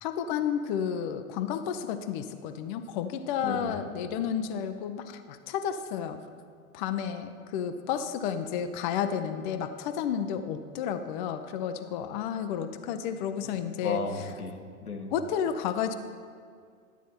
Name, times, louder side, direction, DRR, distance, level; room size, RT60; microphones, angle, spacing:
voice 1, 0.0-6.2 6.7-14.0 15.1-15.9, left 8 dB, 35° left, 9 dB, 0.5 m, -31 dB
voice 2, 3.4-3.8 7.9-8.0 13.4-13.5 13.8-15.1, left 3 dB, 85° left, 4 dB, 1.2 m, -35 dB
11.5 x 8.1 x 4.3 m, 2.1 s
figure-of-eight pair, 105°, 43 cm